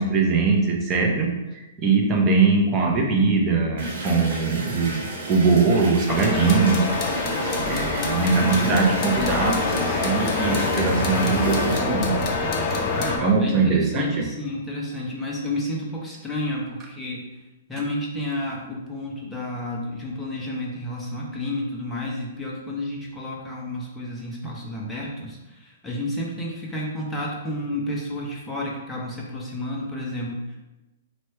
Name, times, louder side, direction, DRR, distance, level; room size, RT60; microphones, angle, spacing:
voice 1, 0.0-6.8 7.7-12.1 13.2-14.2, right 4 dB, 25° right, 0 dB, 0.7 m, -21 dB
sound 1, 3.8-11.8, right 2 dB, 60° right, 1.0 m, -33 dB
sound 2, 6.1-13.2, left 3 dB, 35° left, 0.7 m, -25 dB
voice 2, 7.9-8.7 13.0-17.2 17.7-30.6, left 1 dB, 10° left, -4 dB, 0.8 m, -31 dB
3.0 x 3.0 x 4.4 m, 1.0 s
hypercardioid pair, 150°, 0 cm